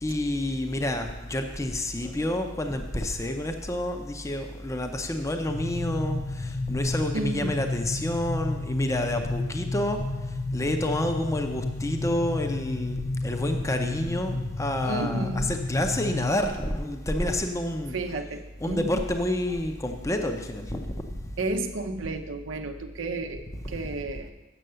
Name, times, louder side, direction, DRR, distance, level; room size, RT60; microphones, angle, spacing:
voice 1, 0.0-10.0 10.5-18.0 18.6-21.0 23.5-23.7, left 1 dB, 15° left, 5 dB, 0.6 m, -29 dB
sound 1, 5.5-16.3, left 2 dB, 65° left, 0.5 m, -32 dB
voice 2, 7.1-7.7 14.8-15.5 17.9-19.0 21.4-24.3, right 2 dB, 80° right, 5 dB, 0.7 m, -32 dB
7.7 x 6.6 x 6.7 m, 1.1 s
head